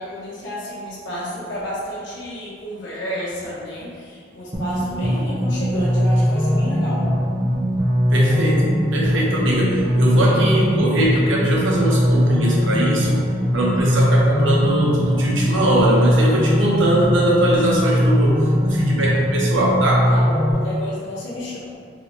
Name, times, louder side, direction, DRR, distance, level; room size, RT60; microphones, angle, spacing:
voice 1, 0.0-7.1 15.8-16.2 20.1-21.7, left 1 dB, 75° left, -8 dB, 0.8 m, -31 dB
sound 1, 4.5-20.5, equal, 30° right, 0.6 m, -20 dB
voice 2, 8.1-13.2 13.5-20.1, right 1 dB, 80° right, -4 dB, 0.7 m, -20 dB
3.0 x 2.0 x 4.1 m, 2.1 s
head